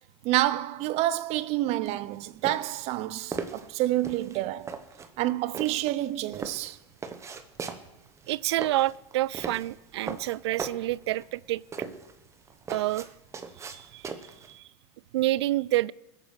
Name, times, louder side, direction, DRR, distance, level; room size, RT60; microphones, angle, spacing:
voice 1, 0.2-4.7 5.2-6.8, right 15 dB, 50° right, 0.7 m, -28 dB
sound 1, 1.9-14.5, right 5 dB, 20° right, 1.3 m, -39 dB
voice 2, 8.3-11.6 12.7-13.1 13.7-14.0 14.5-14.6 15.1-15.9, right 16 dB, 85° right, 0.4 m, -28 dB
19.5 x 8.4 x 6.5 m
supercardioid pair, 120°, 14 cm